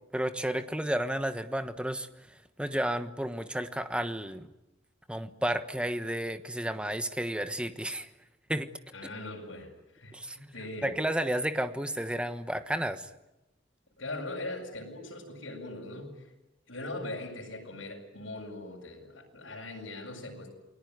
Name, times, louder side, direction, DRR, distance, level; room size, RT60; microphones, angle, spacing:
voice 1, 0.1-2.1 2.6-4.5 5.1-8.1 8.5-8.7 10.1-10.4 10.8-13.1, right 1 dB, 5° right, 9 dB, 1.2 m, -32 dB
voice 2, 8.9-11.0 14.0-16.2 16.7-20.5, left 2 dB, 85° left, 0 dB, 7.5 m, -40 dB
29.0 x 20.0 x 9.6 m, 0.99 s
head